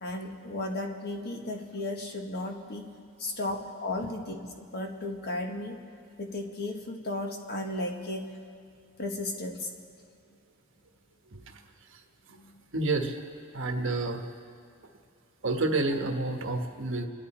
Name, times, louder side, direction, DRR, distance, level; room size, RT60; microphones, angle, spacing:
voice 1, 0.0-2.9 3.2-5.8 6.2-8.3 9.0-9.7 12.3-12.5, left 2 dB, 50° left, 3 dB, 1.6 m, -35 dB
voice 2, 12.7-13.2 13.5-14.3 15.4-17.1, right 2 dB, 65° right, 4 dB, 1.4 m, -29 dB
28.0 x 11.0 x 4.4 m, 2.3 s
head